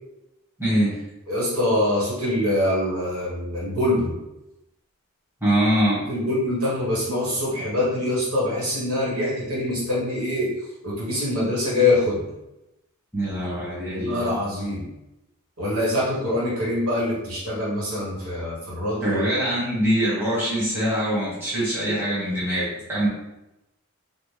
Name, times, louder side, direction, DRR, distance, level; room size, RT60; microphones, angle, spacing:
voice 1, 0.6-1.0 5.4-6.0 13.1-14.5 19.0-23.1, equal, 10° right, -10 dB, 1.0 m, -23 dB
voice 2, 1.3-4.2 6.1-10.5 10.8-12.3 13.9-14.9 15.6-19.2, left 1 dB, 85° right, -7 dB, 1.3 m, -24 dB
2.9 x 2.1 x 3.2 m, 0.93 s
head